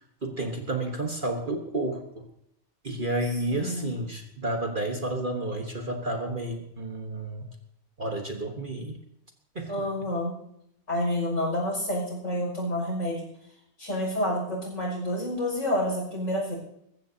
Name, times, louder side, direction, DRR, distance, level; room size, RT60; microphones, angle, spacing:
voice 1, 0.2-2.2 2.8-7.5 8.0-9.0 9.5-9.8, right 1 dB, 35° right, 3 dB, 1.4 m, -31 dB
voice 2, 3.5-3.9 9.7-10.4 10.9-13.3 13.8-16.6, left 1 dB, 60° left, -2 dB, 6.6 m, -29 dB
20.5 x 15.0 x 2.8 m, 0.74 s
omnidirectional pair, 1.5 m